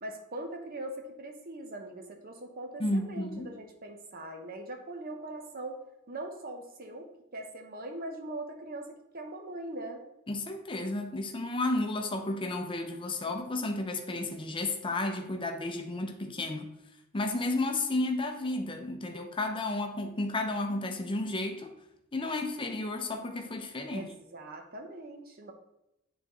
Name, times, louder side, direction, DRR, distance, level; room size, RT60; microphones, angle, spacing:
voice 1, 0.0-5.8 6.1-10.0 23.9-25.5, right 1 dB, 40° right, 3 dB, 0.9 m, -41 dB
voice 2, 2.8-3.6 10.3-16.7 17.1-21.7 22.1-24.1, left 2 dB, 25° left, 4 dB, 0.6 m, -32 dB
8.9 x 4.0 x 3.0 m, 0.88 s
head